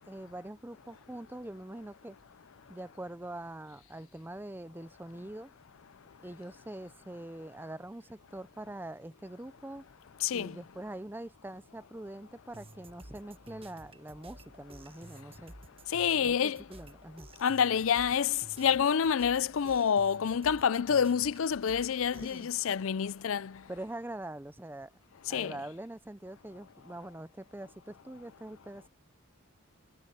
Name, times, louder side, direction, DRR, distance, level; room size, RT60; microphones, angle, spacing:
voice 1, 0.1-2.2 2.7-5.5 6.2-9.9 10.3-15.5 16.2-17.3 22.2-22.5 23.7-24.9 25.3-28.9, right 1 dB, 10° right, 0.5 m, -44 dB
voice 2, 10.2-10.5 15.9-16.6 17.4-23.5 25.3-25.6, left 7 dB, 65° left, 0.4 m, -28 dB
sound 1, 12.5-22.4, right 2 dB, 25° right, 1.5 m, -53 dB
head